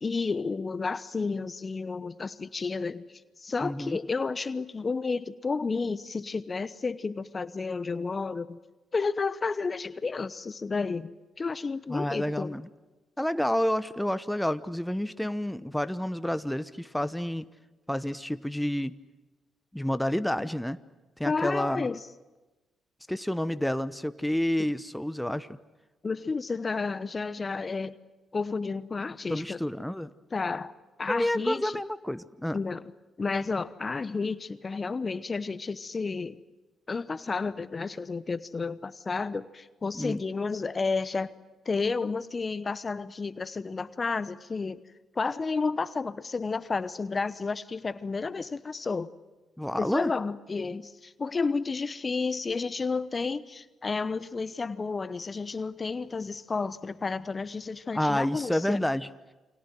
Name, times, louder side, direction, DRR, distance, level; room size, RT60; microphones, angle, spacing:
voice 1, 0.0-3.0 3.4-8.6 8.9-11.1 11.4-12.5 21.2-22.0 26.0-28.0 28.3-29.6 30.3-30.7 31.0-31.8 32.5-32.8 33.2-36.4 36.9-41.3 41.6-44.8 45.2-49.1 49.8-58.8, left 4 dB, 35° left, 16 dB, 1.0 m, -31 dB
voice 2, 3.6-4.0 11.9-12.7 13.2-17.4 17.9-19.0 19.7-20.8 21.2-21.9 23.1-25.5 29.3-30.1 31.1-32.6 39.9-40.2 49.6-50.1 57.9-59.1, left 1 dB, 5° left, 14 dB, 1.0 m, -29 dB
29.0 x 24.5 x 7.9 m, 1.1 s
hypercardioid pair, 45°, 0 cm